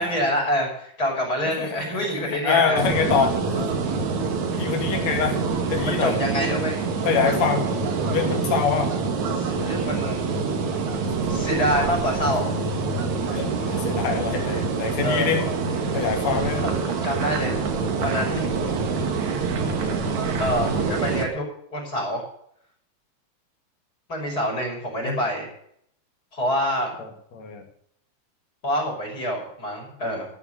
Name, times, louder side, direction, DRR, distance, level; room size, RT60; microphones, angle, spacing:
voice 1, 0.0-2.8 5.8-6.9 9.3-10.2 11.3-12.5 15.0-15.4 16.6-17.6 18.0-18.4 20.4-21.5 21.7-22.2 24.1-25.5 26.3-26.9 28.6-30.3, equal, 20° left, -1 dB, 5.9 m, -26 dB
voice 2, 1.6-3.7 4.5-5.4 5.7-6.1 7.0-7.6 8.1-8.9 12.2-12.3 13.3-15.4 15.9-16.6 25.0-25.2 27.0-27.6, left 6 dB, 45° left, 3 dB, 3.4 m, -25 dB
sound 1, 2.8-21.3, right 4 dB, 50° right, 2.6 m, -26 dB
14.0 x 9.3 x 6.6 m, 0.66 s
omnidirectional pair, 4.8 m